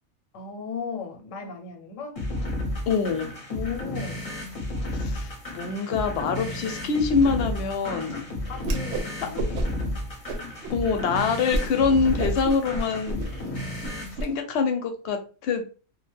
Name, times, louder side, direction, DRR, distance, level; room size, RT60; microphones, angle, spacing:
voice 1, 0.3-2.2 3.5-4.3 8.5-10.0, left 6 dB, 85° left, 1.0 m, -36 dB
sound 1, 2.2-14.2, left 1 dB, 35° left, 0.7 m, -32 dB
voice 2, 2.9-3.3 4.8-8.2 10.7-13.3 14.2-15.6, left 5 dB, 65° left, 0.8 m, -25 dB
Whoosh swoosh swish, 8.6-9.1 9.4-9.9 10.3-10.8 11.1-11.2 11.5-11.7 12.0-14.3, right 1 dB, 70° right, 0.8 m, -30 dB
2.4 x 2.1 x 3.2 m
omnidirectional pair, 1.3 m